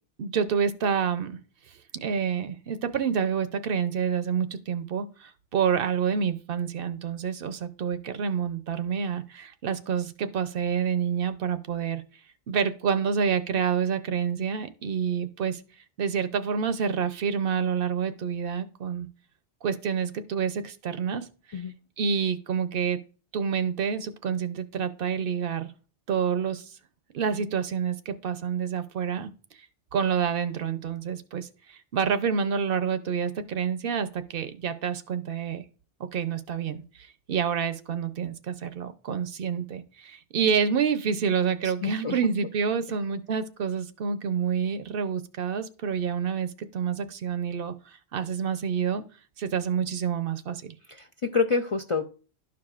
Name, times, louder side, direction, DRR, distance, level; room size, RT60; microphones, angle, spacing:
voice 1, 0.2-1.4 2.0-12.0 12.5-15.6 16.0-19.1 19.6-21.6 22.0-23.0 23.3-25.7 26.1-26.7 27.1-29.3 29.9-35.6 36.1-49.0 49.4-50.7, right 7 dB, 65° right, 11 dB, 0.8 m, -28 dB
voice 2, 41.8-42.2 50.9-52.0, left 4 dB, 50° left, 3 dB, 0.4 m, -27 dB
12.0 x 4.8 x 2.4 m, 0.37 s
omnidirectional pair, 1.1 m